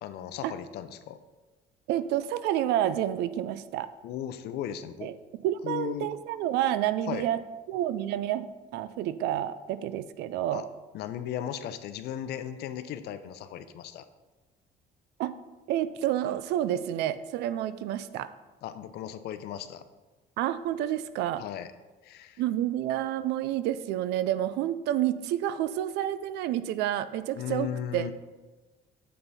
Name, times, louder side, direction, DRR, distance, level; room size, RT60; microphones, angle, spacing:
voice 1, 0.0-1.2 4.0-5.1 5.6-6.1 7.1-7.3 10.5-10.6 10.9-14.1 18.6-19.8 21.4-21.7 22.0-22.4 27.4-28.1, left 10 dB, 75° left, 11 dB, 0.6 m, -36 dB
voice 2, 1.9-3.9 5.0-5.1 5.4-7.4 7.7-8.5 8.7-10.7 15.2-15.3 15.7-18.3 20.4-21.4 22.4-28.1, right 12 dB, 85° right, 14 dB, 0.4 m, -29 dB
7.6 x 5.5 x 4.1 m, 1.2 s
cardioid pair, 110°, 17 cm